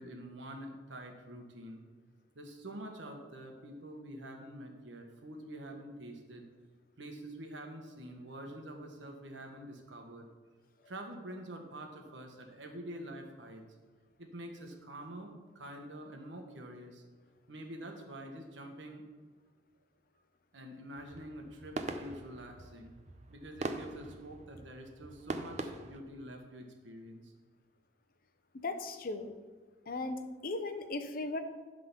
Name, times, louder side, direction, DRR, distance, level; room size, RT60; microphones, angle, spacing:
voice 1, 0.0-1.8 2.3-6.5 7.0-10.3 10.9-13.6 14.2-17.0 17.5-19.1 20.5-22.9 23.3-27.3, right 1 dB, 90° right, 3 dB, 1.3 m, -46 dB
sound 1, 21.0-26.0, right 2 dB, 40° right, 0.5 m, -42 dB
voice 2, 28.6-29.3 29.9-31.4, left 2 dB, 50° left, 8 dB, 0.7 m, -37 dB
11.5 x 3.8 x 5.8 m, 1.4 s
head